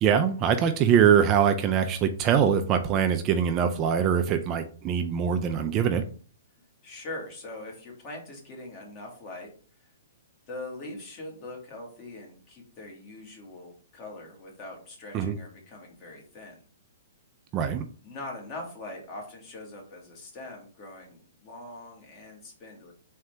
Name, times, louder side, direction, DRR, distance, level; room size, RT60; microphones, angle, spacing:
voice 1, 0.0-6.0 15.1-15.3 17.5-17.8, right 8 dB, 25° right, 7 dB, 0.4 m, -23 dB
voice 2, 6.8-9.5 10.5-16.6 18.0-22.9, left 2 dB, 35° left, 0 dB, 1.6 m, -42 dB
3.7 x 3.3 x 3.3 m, 0.42 s
hypercardioid pair, 145°, 0 cm